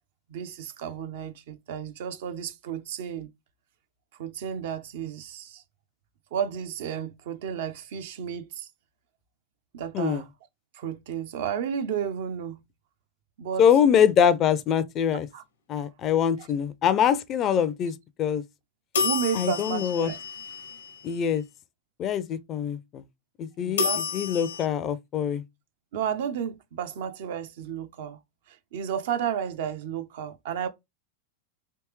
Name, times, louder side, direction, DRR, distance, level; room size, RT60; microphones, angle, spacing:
voice 1, 0.3-3.3 4.2-5.6 6.3-8.7 9.7-10.3 10.7-12.6 13.4-13.7 15.3-15.4 15.8-15.9 16.4-16.5 19.0-20.2 23.6-24.1 25.9-28.2 28.5-30.7, right 8 dB, 65° right, 0.5 m, -32 dB
voice 2, 13.6-15.3 15.7-18.4 19.3-20.1 21.0-21.4 22.0-23.0 23.4-23.8 24.1-25.4, left 8 dB, 35° left, 0.5 m, -24 dB
sound 1, 18.9-21.2 23.8-24.7, left 4 dB, 80° left, 1.0 m, -30 dB
3.4 x 2.9 x 3.1 m
hypercardioid pair, 95°, 0 cm